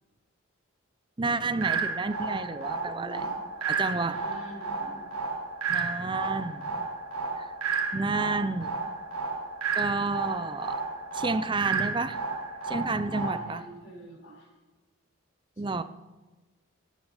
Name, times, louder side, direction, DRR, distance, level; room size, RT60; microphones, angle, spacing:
voice 1, 1.2-3.2 3.7-4.2 5.7-6.9 7.4-7.5 7.9-8.8 9.8-10.8 11.1-12.2 12.6-13.6 15.6-15.8, right 3 dB, 20° right, 13 dB, 0.5 m, -30 dB
sound 1, 1.6-13.6, right 4 dB, 90° right, 1.5 m, -32 dB
voice 2, 3.0-3.3 3.7-5.0 13.0-14.5, right 1 dB, 70° left, -9 dB, 5.9 m, -46 dB
18.0 x 9.2 x 5.7 m, 1.2 s
head